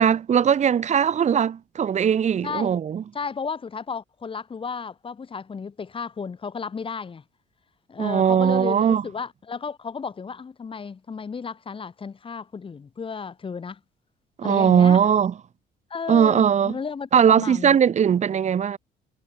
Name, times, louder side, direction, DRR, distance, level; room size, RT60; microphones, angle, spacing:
voice 1, 0.0-3.0 8.0-9.0 14.4-15.3 16.1-16.7 17.1-18.8, right 8 dB, 45° right, 3.0 m, -19 dB
voice 2, 2.4-7.2 7.9-13.8 14.4-15.0 15.9-17.8, left 5 dB, 30° left, 6.0 m, -33 dB
cardioid pair, 110°, 17 cm